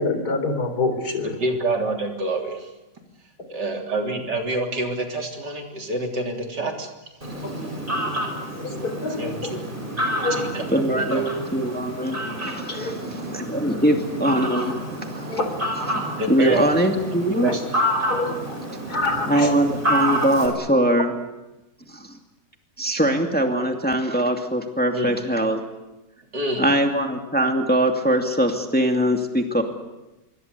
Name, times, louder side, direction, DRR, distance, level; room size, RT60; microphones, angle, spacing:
voice 1, 0.0-1.3 8.8-9.2 10.2-10.4 12.7-12.9 15.3-15.5 18.1-18.6 18.9-19.5, left 2 dB, 65° left, 7 dB, 4.4 m, -25 dB
voice 2, 1.2-2.7 3.5-6.9 9.2-9.6 10.2-11.2 16.2-16.6 17.1-17.6 24.9-25.2 26.3-26.6, right 2 dB, 90° right, 2 dB, 4.2 m, -27 dB
Fowl, 7.2-20.5, equal, 30° right, 5.9 m, -29 dB
voice 3, 10.7-14.8 15.1-15.4 15.7-16.0 16.3-17.5 19.2-21.2 21.9-22.2 22.8-25.6 26.6-29.6, right 1 dB, 5° left, 3 dB, 2.4 m, -22 dB
27.0 x 23.5 x 8.3 m, 0.99 s
omnidirectional pair, 1.8 m